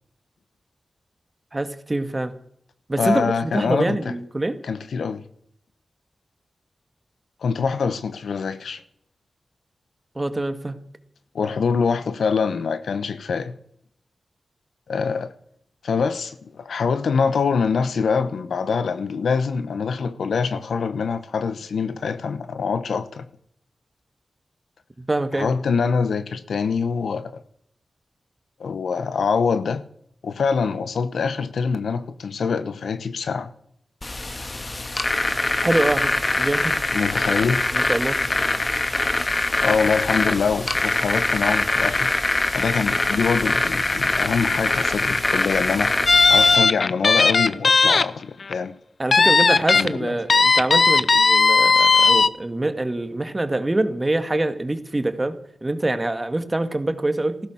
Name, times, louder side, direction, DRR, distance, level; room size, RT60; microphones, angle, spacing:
voice 1, 1.5-2.3 2.9-4.6 10.2-10.8 25.0-25.5 35.6-36.7 37.7-38.2 49.0-57.4, right 2 dB, 30° right, 1.9 m, -25 dB
voice 2, 3.0-4.1 4.6-5.2 7.4-8.8 11.3-13.6 14.9-15.3 15.8-23.3 25.3-27.4 28.6-29.8 30.2-33.5 36.9-37.6 39.6-42.1 42.5-48.7 49.7-50.1, left 5 dB, 90° left, 1.0 m, -24 dB
sound 1, 34.0-46.6, left 2 dB, 40° left, 1.8 m, -23 dB
sound 2, 46.1-48.0 48.4-48.5 49.1-49.9 50.3-52.3, left 4 dB, 65° left, 0.7 m, -16 dB
15.0 x 13.0 x 6.3 m
cardioid pair, 45°, 0 cm